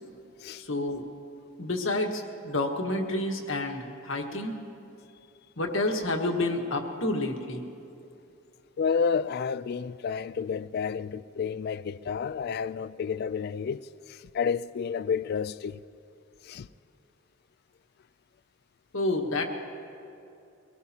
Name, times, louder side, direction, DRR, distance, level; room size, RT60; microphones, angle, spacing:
voice 1, 0.5-1.0 1.6-4.6 5.6-7.6 18.9-19.4, left 2 dB, 70° left, 1.4 m, -29 dB
voice 2, 8.8-13.8 14.1-15.8 16.4-16.7, left 6 dB, 50° left, 0.3 m, -30 dB
23.0 x 18.0 x 2.8 m
head